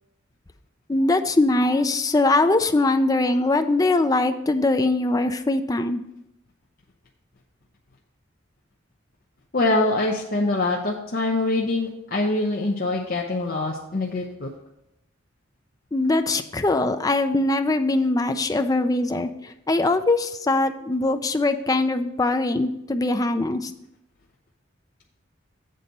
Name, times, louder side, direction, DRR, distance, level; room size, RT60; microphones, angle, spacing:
voice 1, 0.9-6.0 15.9-19.3 19.7-23.7, left 2 dB, 20° left, 8 dB, 0.4 m, -22 dB
voice 2, 9.5-14.5, left 2 dB, 50° left, -1 dB, 0.7 m, -24 dB
7.7 x 4.1 x 6.6 m, 0.84 s
head